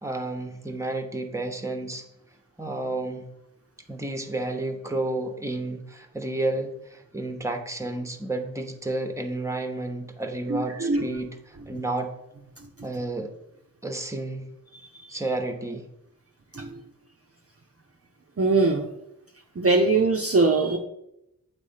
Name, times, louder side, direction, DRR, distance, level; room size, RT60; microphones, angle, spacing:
voice 1, 0.0-2.1 2.6-3.3 3.9-12.1 12.8-13.3 13.8-14.5 15.1-15.9, right 2 dB, 10° right, 5 dB, 1.0 m, -31 dB
voice 2, 10.5-11.1 15.0-15.1 16.5-16.8 18.4-18.9 19.6-20.8, right 3 dB, 40° right, 2 dB, 0.7 m, -22 dB
8.4 x 3.2 x 5.6 m, 0.85 s
wide cardioid pair, 50°, 37 cm